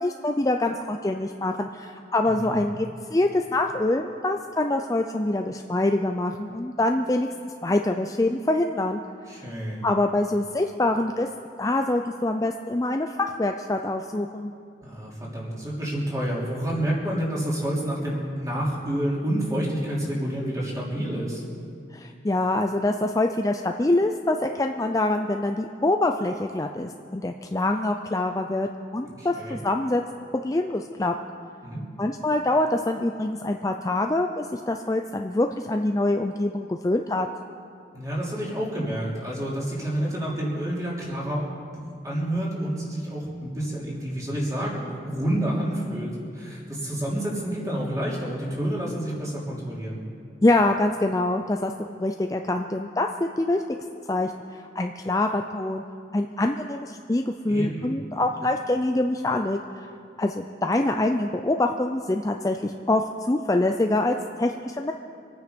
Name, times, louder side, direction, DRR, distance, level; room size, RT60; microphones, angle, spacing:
voice 1, 0.0-9.0 9.8-11.3 11.6-14.5 21.9-30.0 30.4-31.1 32.0-37.3 50.4-53.6 54.1-55.8 56.1-59.9 60.2-64.9, left 2 dB, 20° left, 4 dB, 0.4 m, -25 dB
voice 2, 2.2-2.6 9.3-9.8 14.8-21.4 29.2-29.6 31.6-31.8 37.9-50.0 57.5-57.9, right 1 dB, 20° right, -5 dB, 3.1 m, -29 dB
25.5 x 9.3 x 5.2 m, 2.4 s
head